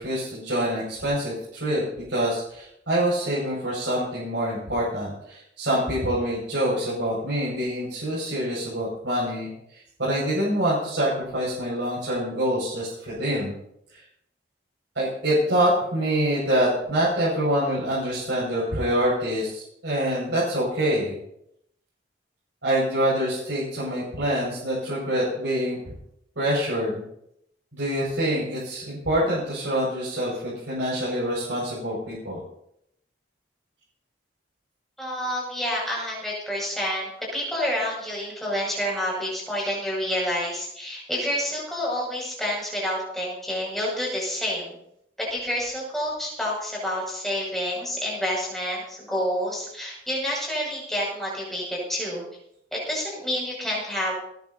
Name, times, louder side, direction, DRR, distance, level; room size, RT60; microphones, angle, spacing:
voice 1, 0.0-1.8 2.1-13.5 13.9-14.0 14.9-21.2 22.6-25.9 26.4-27.0 27.7-32.4, right 1 dB, 70° right, -7 dB, 5.9 m, -26 dB
voice 2, 35.0-44.8 45.2-52.2 52.7-54.1, equal, ahead, -4 dB, 6.5 m, -28 dB
29.5 x 10.5 x 2.8 m, 0.76 s
head